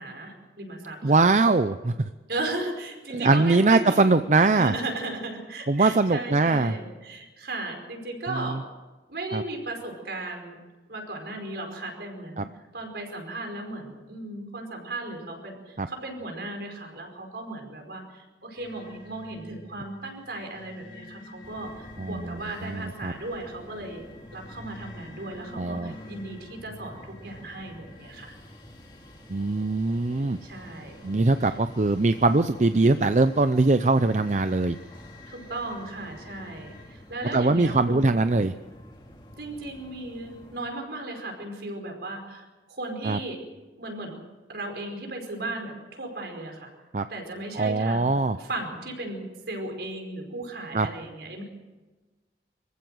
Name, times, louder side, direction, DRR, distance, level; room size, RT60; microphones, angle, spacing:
voice 1, 0.0-1.2 2.3-4.0 4.4-8.6 9.1-10.6 10.9-24.1 24.3-28.3 30.4-31.1 35.3-38.0 39.4-43.4 43.7-44.2 44.5-46.7 47.1-48.1 48.4-51.4, right 2 dB, 65° right, 3 dB, 5.1 m, -36 dB
voice 2, 1.0-2.1 3.1-4.7 5.7-6.8 8.3-8.6 9.3-9.4 12.4-12.5 15.8-15.9 22.0-23.1 25.6-25.9 29.3-30.4 31.0-34.8 37.3-38.5 43.0-43.2 46.9-47.1 47.6-48.4 50.7-50.9, right 3 dB, 40° right, 10 dB, 0.6 m, -22 dB
sound 1, 18.6-36.9, left 2 dB, 85° left, 3.9 m, -50 dB
sound 2, 21.4-40.6, equal, 25° left, 3.1 m, -49 dB
25.5 x 15.0 x 7.8 m, 1.2 s
head